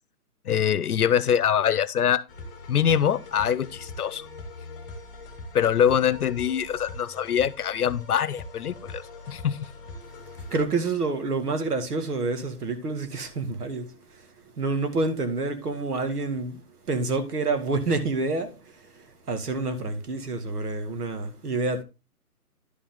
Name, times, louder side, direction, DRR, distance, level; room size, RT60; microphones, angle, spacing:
voice 1, 0.4-2.2 2.7-4.3 5.5-9.0 9.3-9.6, left 8 dB, 70° left, 0.8 m, -24 dB
sound 1, 2.3-10.6, left 2 dB, 5° left, 1.1 m, -42 dB
voice 2, 10.5-14.3 14.6-21.8, right 3 dB, 75° right, 2.2 m, -28 dB
11.5 x 5.4 x 3.7 m
hypercardioid pair, 160°, 46 cm